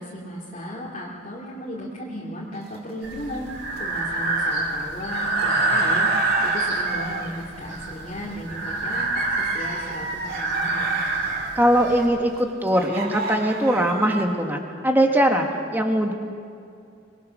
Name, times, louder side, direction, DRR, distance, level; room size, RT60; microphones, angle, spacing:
voice 1, 0.0-3.5 3.8-9.1 9.4-11.0, equal, 40° left, -5 dB, 2.6 m, -35 dB
sound 1, 2.5-3.9 4.2-14.3, right 4 dB, 55° right, 2.0 m, -34 dB
Breathing, 3.0-12.1, right 2 dB, 85° right, 6.3 m, -26 dB
voice 2, 11.6-16.1, right 1 dB, 10° right, 3 dB, 1.7 m, -21 dB
24.0 x 21.5 x 6.4 m, 2.4 s
head